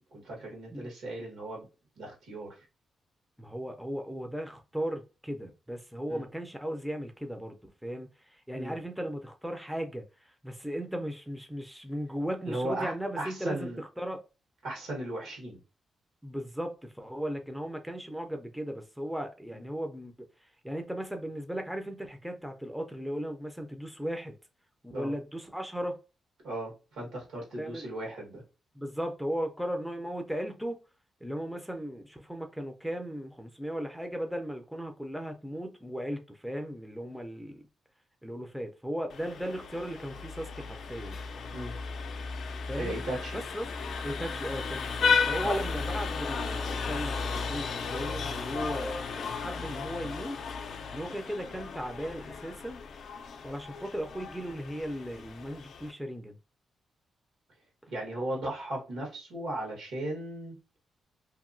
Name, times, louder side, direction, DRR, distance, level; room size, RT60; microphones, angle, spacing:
voice 1, 0.1-1.6 2.0-2.6 6.1-6.2 8.5-8.8 12.5-13.8 14.6-15.6 19.5-19.6 24.9-25.1 26.4-28.4 41.5-41.7 42.7-43.4 45.4-45.6 57.9-60.6, right 1 dB, 85° right, 1.4 m, -36 dB
voice 2, 3.4-7.5 7.8-14.2 16.2-20.1 20.4-24.3 24.8-25.9 27.6-27.8 28.7-30.8 31.2-37.7 38.2-41.2 42.6-43.0 43.3-43.7 44.0-50.4 50.9-52.8 53.4-56.4, equal, ahead, 0.4 m, -36 dB
Vehicle horn car horn honking, 39.1-55.9, left 5 dB, 70° left, 0.4 m, -34 dB
2.8 x 2.6 x 2.6 m
cardioid pair, 95°, 0 cm